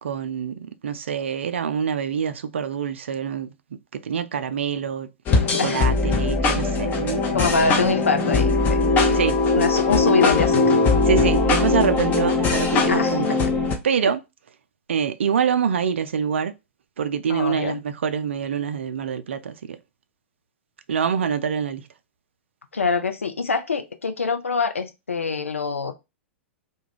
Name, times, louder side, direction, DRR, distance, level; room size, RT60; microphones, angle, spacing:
voice 1, 0.0-3.5 4.0-5.1 5.5-7.2 9.1-9.4 11.1-13.4 13.8-14.2 14.9-16.5 17.0-19.8 20.9-21.8, right 7 dB, 65° right, 0.4 m, -25 dB
sound 1, 5.3-13.8, left 3 dB, 25° left, 0.6 m, -20 dB
voice 2, 7.3-8.8 9.1-9.2 9.6-10.6 12.9-13.3 17.3-17.8 22.7-25.9, left 4 dB, 80° left, 0.5 m, -24 dB
2.3 x 2.2 x 3.3 m
figure-of-eight pair, 100°, 7 cm